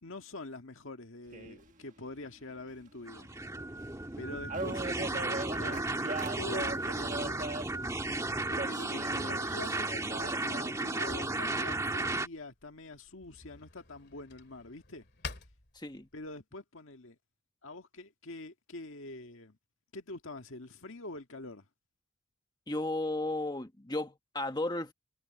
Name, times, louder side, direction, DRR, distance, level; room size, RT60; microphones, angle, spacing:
voice 1, 0.0-3.3 4.2-6.0 6.4-7.5 8.5-15.1 16.1-17.2 17.6-19.6 19.9-21.7, left 2 dB, 70° left, 1.8 m, -45 dB
sound 1, 1.3-1.7 3.4-3.5 3.8-3.9 4.1-4.2 4.5-8.0 8.6-10.8, right 2 dB, 35° right, 1.6 m, -39 dB
sound 2, 3.1-12.3, right 2 dB, 15° right, 1.6 m, -34 dB
Drawer open or close, 7.6-16.4, left 4 dB, 50° left, 2.4 m, -51 dB
voice 2, 15.7-16.1 22.7-24.9, left 2 dB, 20° left, 1.4 m, -34 dB
head